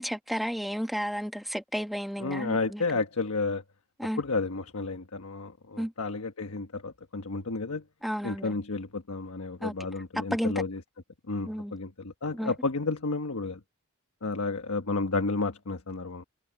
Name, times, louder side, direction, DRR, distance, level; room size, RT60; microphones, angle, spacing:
voice 1, 0.0-2.8 4.0-4.2 5.8-5.9 8.0-8.5 9.6-9.7 10.2-10.6 11.4-11.7 12.3-12.5, equal, ahead, 1.2 m, -32 dB
voice 2, 2.2-3.6 4.2-7.8 8.2-10.8 11.3-13.6 14.2-16.2, left 3 dB, 85° left, 1.3 m, -31 dB
head